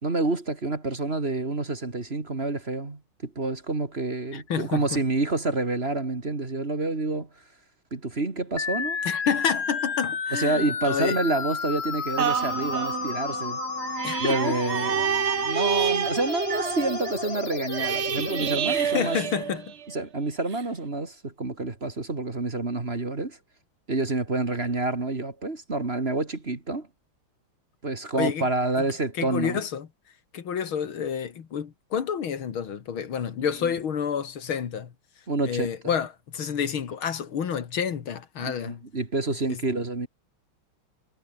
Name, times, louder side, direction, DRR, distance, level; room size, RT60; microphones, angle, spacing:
voice 1, 0.0-7.3 7.9-9.0 10.3-13.6 14.2-19.2 19.9-23.4 23.9-26.9 27.8-29.6 33.4-33.7 35.3-35.9 38.4-40.1, right 2 dB, 30° right, 2.5 m, -28 dB
voice 2, 4.3-5.0 9.0-11.2 14.0-14.5 15.3-15.4 18.7-19.7 28.2-28.4 29.2-29.9 30.3-34.9 35.4-38.8 39.5-39.6, left 7 dB, 75° left, 2.6 m, -29 dB
sound 1, 8.6-18.6, left 6 dB, 35° left, 1.2 m, -32 dB
sound 2, 12.2-20.0 20.5-20.6, right 9 dB, 60° right, 0.7 m, -29 dB
omnidirectional pair, 2.3 m